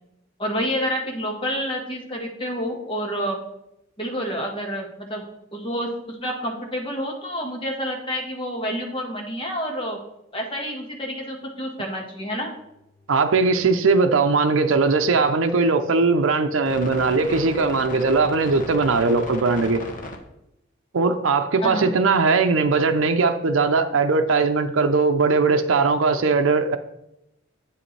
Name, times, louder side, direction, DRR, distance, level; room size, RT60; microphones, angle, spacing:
voice 1, 0.4-3.4 4.0-5.2 5.5-10.0 10.3-12.5 21.6-21.9, equal, 25° left, 1 dB, 1.5 m, -28 dB
voice 2, 13.1-19.8 20.9-26.8, right 4 dB, 80° right, 6 dB, 0.6 m, -20 dB
sound 1, 13.3-20.2, left 2 dB, 45° left, 1.1 m, -38 dB
8.4 x 7.6 x 3.3 m, 0.83 s
head